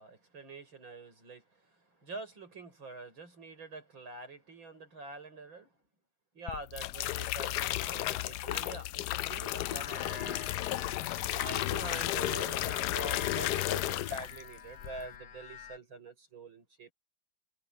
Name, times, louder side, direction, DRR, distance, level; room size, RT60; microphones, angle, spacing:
voice 1, 0.0-1.6 2.0-5.7 6.3-10.4 11.2-16.9, right 3 dB, 85° right, 7.1 m, -46 dB
sound 1, 6.5-14.5 14.8-15.2, left 15 dB, 70° left, 1.0 m, -33 dB
sound 2, 9.6-15.8, left 6 dB, 55° left, 2.1 m, -47 dB
omnidirectional pair, 2.1 m